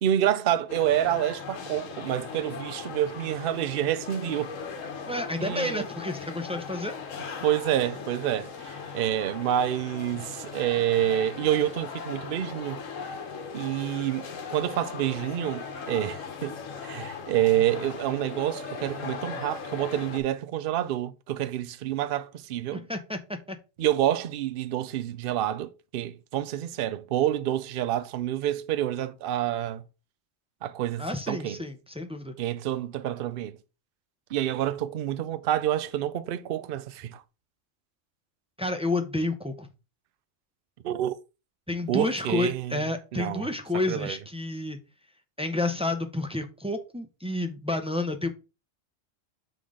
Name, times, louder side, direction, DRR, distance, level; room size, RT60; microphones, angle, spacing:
voice 1, 0.0-4.5 5.4-5.9 7.4-12.8 13.5-22.8 23.8-29.8 30.6-31.6 32.4-33.5 34.3-37.2 40.8-41.1 41.9-42.8 43.1-43.5 43.9-44.2, right 11 dB, 60° right, 0.6 m, -28 dB
sound 1, 0.7-20.2, left 5 dB, 75° left, 1.3 m, -38 dB
voice 2, 5.1-6.9 22.7-23.2 23.5-23.6 31.0-32.4 38.6-39.7 41.7-44.8 45.4-48.3, left 2 dB, 5° right, 0.5 m, -30 dB
5.7 x 3.9 x 4.9 m
omnidirectional pair, 1.4 m